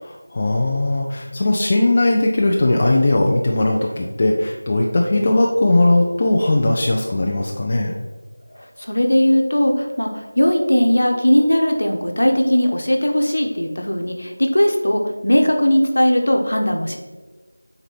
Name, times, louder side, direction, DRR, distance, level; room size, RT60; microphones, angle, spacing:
voice 1, 0.0-7.9, left 2 dB, 25° left, -1 dB, 0.5 m, -18 dB
voice 2, 8.5-17.0, equal, 60° left, 2 dB, 1.2 m, -18 dB
9.1 x 4.0 x 4.1 m, 1.3 s
figure-of-eight pair, 170°, 0 cm